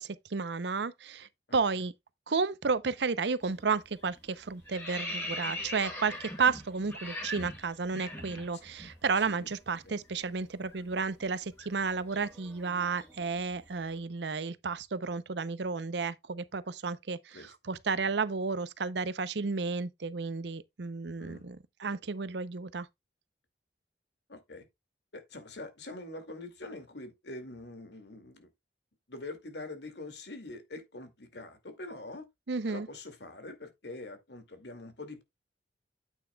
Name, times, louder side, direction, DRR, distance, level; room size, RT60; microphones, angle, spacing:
voice 1, 0.0-1.9 2.3-17.2 17.7-22.9 32.5-32.9, right 4 dB, 70° right, 0.7 m, -32 dB
sound 1, 3.4-3.7 4.0-9.0 9.2-9.4 9.7-13.8, left 1 dB, 15° left, 3.5 m, -42 dB
voice 2, 9.2-9.5 9.8-10.0 17.3-17.5 21.2-21.5 24.3-24.7 25.1-28.5 29.1-32.3 32.7-35.2, left 2 dB, 70° left, 2.3 m, -44 dB
9.3 x 9.1 x 2.3 m
head